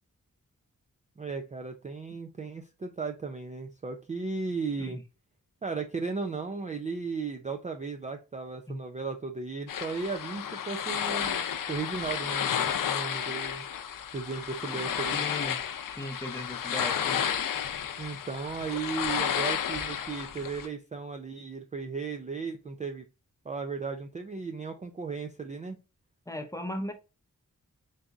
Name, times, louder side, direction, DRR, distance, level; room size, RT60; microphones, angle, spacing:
voice 1, 1.2-5.0 5.6-13.6 14.1-15.2 18.0-23.1 23.5-25.8, right 4 dB, 25° right, 0.3 m, -35 dB
sound 1, 9.7-20.7, left 8 dB, 75° left, 0.5 m, -32 dB
voice 2, 14.7-15.6 16.0-17.2 26.3-26.9, left 1 dB, 10° left, 0.6 m, -37 dB
4.0 x 3.7 x 2.3 m
wide cardioid pair, 105°, 33 cm